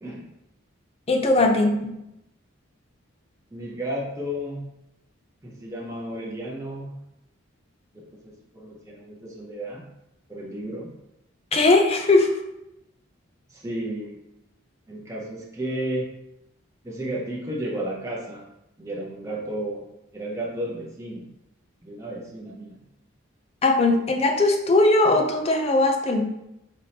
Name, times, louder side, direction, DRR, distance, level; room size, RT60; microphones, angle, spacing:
voice 1, 1.1-1.9 11.5-12.3 23.6-26.2, left 2 dB, 30° left, 4 dB, 0.4 m, -19 dB
voice 2, 3.5-4.7 5.4-6.9 7.9-9.8 10.3-10.9 13.5-14.2 14.9-16.1 16.8-18.5 18.8-19.8 20.1-21.3 21.8-22.8, right 1 dB, 15° right, -4 dB, 0.6 m, -33 dB
4.1 x 3.4 x 2.7 m, 0.87 s
head